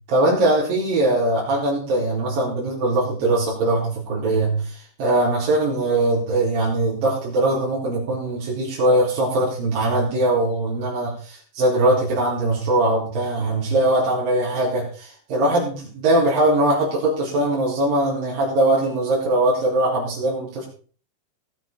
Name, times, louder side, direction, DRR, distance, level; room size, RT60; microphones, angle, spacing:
voice 1, 0.1-20.7, right 1 dB, 55° right, -6 dB, 5.8 m, -21 dB
18.0 x 8.8 x 4.5 m, 0.41 s
omnidirectional pair, 5.0 m